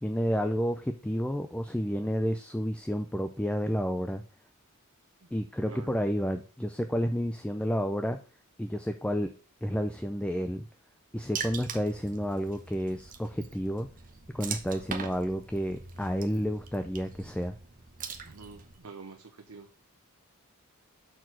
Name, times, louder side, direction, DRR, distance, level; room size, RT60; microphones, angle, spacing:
voice 1, 0.0-4.2 5.3-8.2 8.6-9.3 9.6-10.7 11.1-13.9 14.3-17.6, equal, 5° left, 6 dB, 0.4 m, -30 dB
voice 2, 5.7-6.0 18.3-19.7, right 4 dB, 80° right, 3 dB, 0.8 m, -47 dB
Water / Splash splatter, 11.4-18.8, right 6 dB, 40° right, 0.8 m, -42 dB
6.2 x 4.6 x 6.0 m, 0.38 s
head